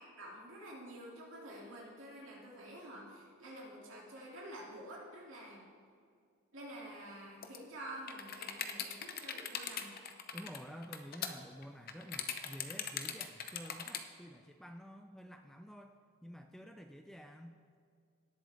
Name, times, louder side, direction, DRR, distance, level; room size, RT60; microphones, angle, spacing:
voice 1, 0.0-5.6 6.5-9.9, right 1 dB, 65° right, -4 dB, 2.9 m, -49 dB
sound 1, 7.4-7.6 7.9-14.0, left 8 dB, 45° left, 0.7 m, -40 dB
voice 2, 10.3-17.8, equal, ahead, 5 dB, 0.3 m, -50 dB
17.5 x 7.6 x 3.6 m, 2.3 s
head